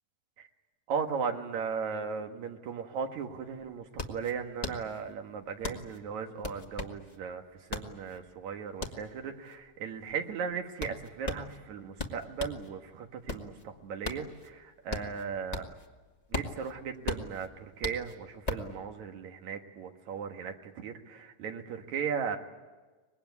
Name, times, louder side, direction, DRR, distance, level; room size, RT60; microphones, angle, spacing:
voice 1, 0.9-15.7 16.3-22.4, right 6 dB, 60° right, 5 dB, 2.7 m, -37 dB
sound 1, 3.0-3.1 3.4-12.7 13.1-15.9 16.1-18.7, left 3 dB, 45° left, 0.5 m, -38 dB
24.5 x 20.5 x 9.6 m, 1.3 s
omnidirectional pair, 3.9 m